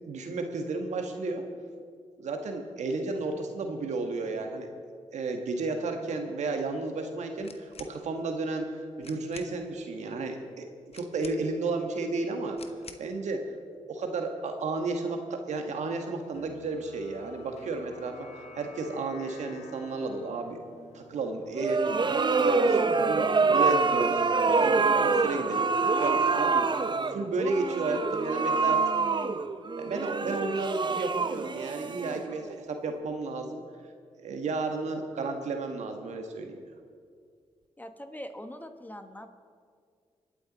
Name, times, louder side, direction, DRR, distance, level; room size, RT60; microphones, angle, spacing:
voice 1, 0.1-1.4 2.2-4.7 5.1-10.7 10.9-12.6 13.0-13.4 13.9-20.6 20.9-24.3 24.6-25.7 26.0-26.7 26.9-28.8 29.8-33.6 34.2-36.6, right 3 dB, 75° right, 5 dB, 1.4 m, -33 dB
sound 1, 7.4-8.0 8.7-8.8 9.0-9.6 10.9-11.7 12.6-13.1, left 5 dB, 55° left, 1.1 m, -48 dB
sound 2, 16.3-23.2, left 1 dB, 75° left, 1.2 m, -50 dB
sound 3, 21.6-32.5, right 4 dB, 40° right, 0.7 m, -26 dB
voice 2, 37.8-39.3, equal, 15° left, 7 dB, 1.4 m, -42 dB
24.5 x 9.2 x 4.0 m, 2.1 s
supercardioid pair, 50°, 12 cm